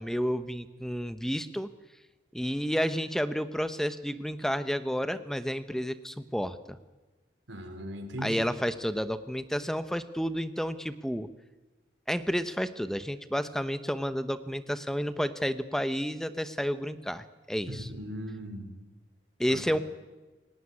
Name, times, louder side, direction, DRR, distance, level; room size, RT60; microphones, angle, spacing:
voice 1, 0.0-1.7 2.3-6.8 8.2-11.3 12.1-17.9 19.4-19.8, equal, ahead, 11 dB, 0.9 m, -31 dB
voice 2, 7.5-8.4 17.7-18.7 19.5-19.8, equal, 90° right, 5 dB, 4.2 m, -38 dB
28.5 x 18.0 x 9.8 m, 1.2 s
head